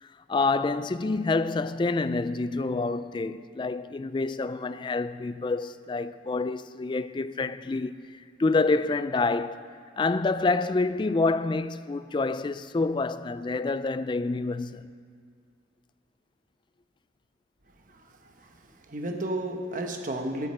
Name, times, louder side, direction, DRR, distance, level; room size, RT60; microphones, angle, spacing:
voice 1, 0.0-9.6 10.0-14.9, left 3 dB, 25° left, 0.3 m, -27 dB
voice 2, 17.9-20.5, right 1 dB, 45° right, 1.1 m, -33 dB
10.0 x 9.4 x 8.7 m
head